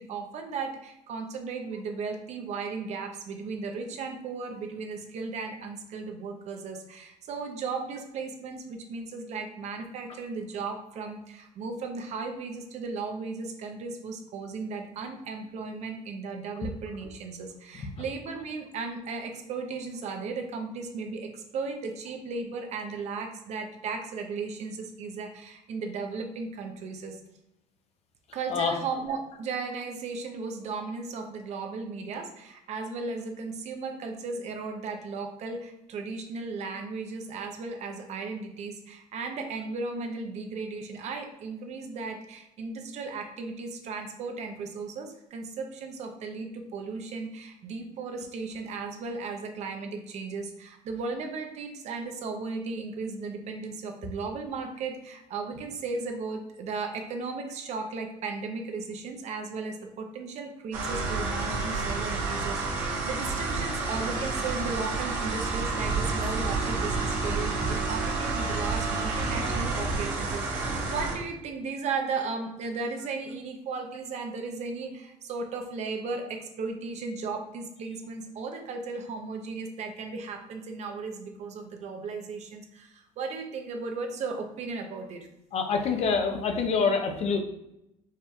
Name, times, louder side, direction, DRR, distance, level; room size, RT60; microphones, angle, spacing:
voice 1, 0.0-27.2 28.3-85.3, right 4 dB, 60° right, 4 dB, 0.6 m, -36 dB
sound 1, 60.7-71.1, right 3 dB, 80° right, 1.2 m, -29 dB
voice 2, 85.5-87.4, left 5 dB, 55° left, 4 dB, 0.7 m, -26 dB
4.8 x 2.8 x 2.3 m, 0.85 s
cardioid pair, 100°, 13 cm